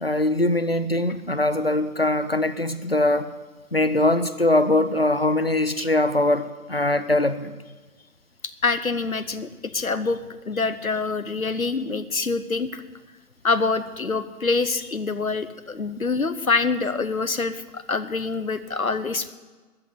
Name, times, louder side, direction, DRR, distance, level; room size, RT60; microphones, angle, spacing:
voice 1, 0.0-3.3 3.7-7.5, left 1 dB, 40° left, 12 dB, 0.7 m, -22 dB
voice 2, 8.6-10.2 10.5-12.8 13.4-19.3, left 4 dB, 65° left, 13 dB, 1.1 m, -25 dB
13.5 x 8.1 x 8.4 m, 1.3 s
figure-of-eight pair, 160°, 45 cm